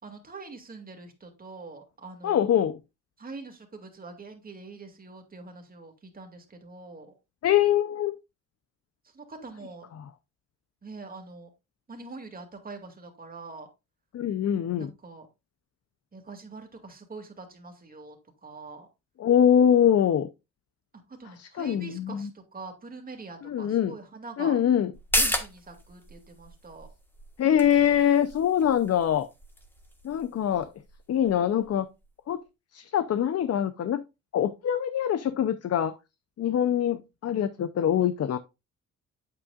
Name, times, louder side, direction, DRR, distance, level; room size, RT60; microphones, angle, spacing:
voice 1, 0.0-2.6 3.2-7.1 9.1-9.9 10.8-11.5 11.9-13.7 14.8-15.3 16.1-18.2 18.4-18.9 21.1-24.6 25.1-26.9, right 3 dB, 30° right, 2.3 m, -44 dB
voice 2, 2.2-2.8 7.4-8.1 10.0-10.1 14.1-14.9 19.2-20.3 21.4-22.3 23.5-23.9 24.4-24.9 27.4-29.3 30.0-30.7 31.1-31.9 32.3-32.4 32.7-34.0 34.3-36.0 36.4-38.4, left 9 dB, 55° left, 0.6 m, -24 dB
sound 1, 24.9-32.1 32.4-32.5, equal, 5° left, 1.4 m, -34 dB
8.5 x 7.7 x 2.4 m
cardioid pair, 115°, 30 cm